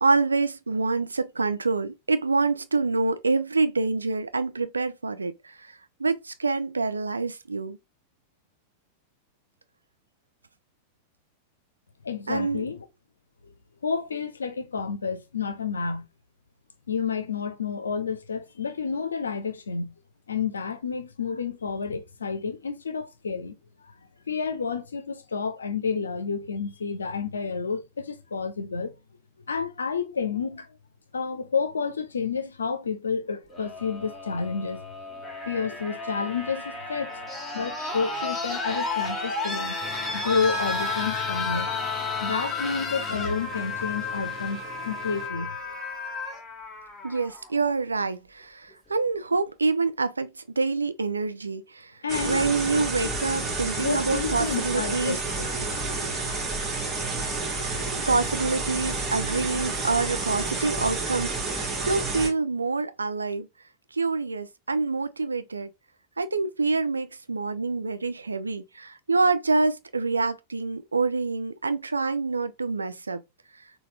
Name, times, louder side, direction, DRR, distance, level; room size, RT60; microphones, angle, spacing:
voice 1, 0.0-5.3 6.0-7.8 12.3-12.7 47.0-50.3 50.6-51.6 52.2-55.2 58.1-63.5 64.0-65.7 66.2-73.2, right 3 dB, 80° right, 0.4 m, -26 dB
voice 2, 12.0-12.9 13.8-16.0 16.9-19.9 20.3-23.5 24.3-28.9 29.5-30.7 31.1-34.8 35.5-37.2 37.5-39.8 40.1-41.8 42.2-45.5 52.0-52.4 53.8-55.5, left 5 dB, 75° left, 0.5 m, -30 dB
sound 1, 33.5-47.5 48.7-48.8, left 3 dB, 10° left, 1.4 m, -32 dB
sound 2, 39.8-45.3, left 6 dB, 30° left, 0.7 m, -43 dB
sound 3, 52.1-62.3, right 3 dB, 25° right, 1.3 m, -30 dB
4.1 x 2.3 x 3.3 m
figure-of-eight pair, 90°, 0 cm